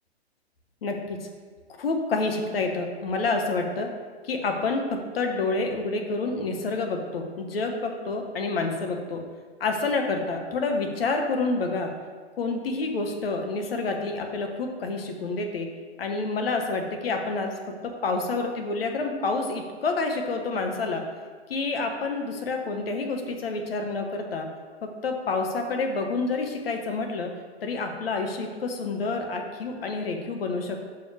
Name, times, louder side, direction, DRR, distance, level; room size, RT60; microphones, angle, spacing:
voice 1, 0.8-1.2 1.8-3.9 4.2-9.2 9.6-11.9 12.4-15.7 16.0-21.0 21.5-24.5 24.8-27.3 27.6-30.9, left 3 dB, 60° left, 3 dB, 1.1 m, -28 dB
6.3 x 4.7 x 4.8 m, 1.5 s
figure-of-eight pair, 115°, 33 cm